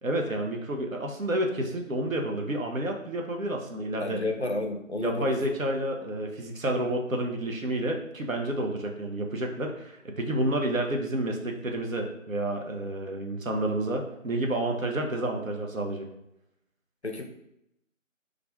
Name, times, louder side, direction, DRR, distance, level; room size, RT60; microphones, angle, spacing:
voice 1, 0.0-4.2 5.0-16.1, right 1 dB, 80° right, 1 dB, 0.8 m, -30 dB
voice 2, 4.0-5.4 17.0-17.2, left 2 dB, 55° left, 3 dB, 0.5 m, -31 dB
4.8 x 2.4 x 2.2 m, 0.84 s
figure-of-eight pair, 175°, 40 cm